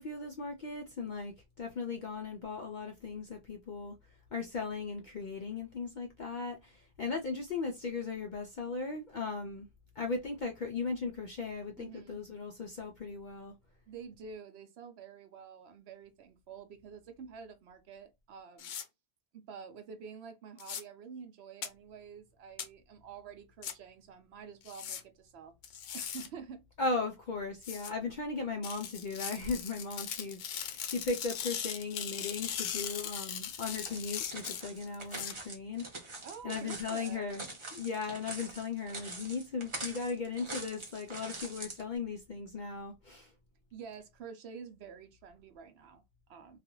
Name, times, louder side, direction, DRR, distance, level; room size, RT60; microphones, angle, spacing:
voice 1, 0.0-4.0 4.3-9.7 10.0-13.5 26.8-37.4 37.7-43.3, left 4 dB, 60° left, 0.5 m, -37 dB
voice 2, 11.8-12.2 13.9-18.7 19.3-25.5 25.9-26.6 36.2-37.3 43.7-46.6, right 6 dB, 65° right, 0.8 m, -48 dB
Tearing Paper Index Cards By Hand, 18.6-18.8 20.6-20.8 21.6-21.7 22.6-22.7 23.6-23.7 24.6-25.0 25.6-26.3 27.6-27.9 28.6-35.3, left 8 dB, 80° left, 0.9 m, -39 dB
sound 1, 33.8-41.8, right 2 dB, 30° right, 0.6 m, -44 dB
2.4 x 2.3 x 2.9 m
omnidirectional pair, 1.2 m